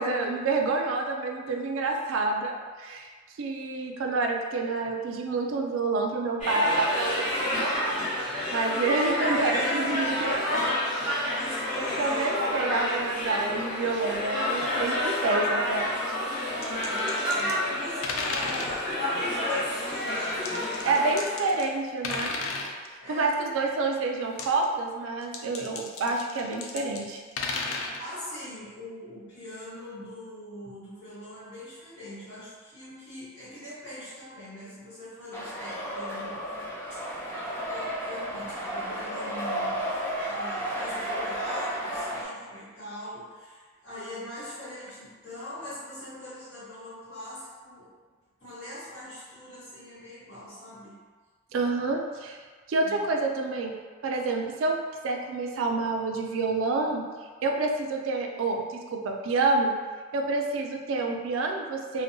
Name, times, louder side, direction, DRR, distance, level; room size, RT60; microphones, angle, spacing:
voice 1, 0.0-3.1 3.4-8.0 8.5-10.6 11.0-11.4 11.8-16.2 20.8-22.3 22.9-27.2 51.5-52.4 52.7-53.7 54.0-54.8 55.0-57.1 57.4-59.8 60.1-62.0, right 3 dB, 70° right, 2 dB, 0.3 m, -28 dB
sound 1, 6.4-21.6, left 1 dB, 40° left, 0.9 m, -29 dB
voice 2, 9.2-10.6 11.0-12.4 16.5-20.8 23.0-23.4 26.0-26.1 28.0-36.4 36.9-37.1 37.4-39.9 40.2-47.9 48.4-51.0 52.8-53.0, left 1 dB, 70° left, -12 dB, 1.1 m, -42 dB
sound 2, 16.6-17.6 18.0-18.8 20.5-21.8 22.0-22.7 24.2-24.6 25.2-28.0, left 4 dB, 85° left, 0.3 m, -33 dB
sound 3, 35.3-42.2, equal, 10° left, 0.4 m, -33 dB
2.6 x 2.1 x 2.6 m, 1.5 s
head